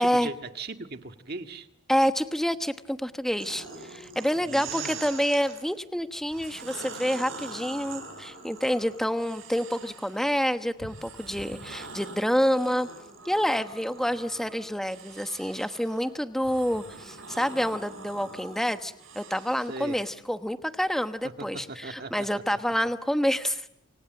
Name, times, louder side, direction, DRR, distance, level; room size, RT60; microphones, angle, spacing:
voice 1, 0.0-1.7 4.4-5.0 19.7-20.0 21.2-22.6, right 2 dB, 50° right, 6 dB, 1.8 m, -39 dB
voice 2, 1.9-12.9 13.2-23.7, equal, ahead, 8 dB, 1.1 m, -28 dB
sound 1, 3.4-5.6 6.2-10.3 10.8-19.9, right 4 dB, 70° right, 6.5 m, -43 dB
28.5 x 26.5 x 7.8 m, 0.84 s
head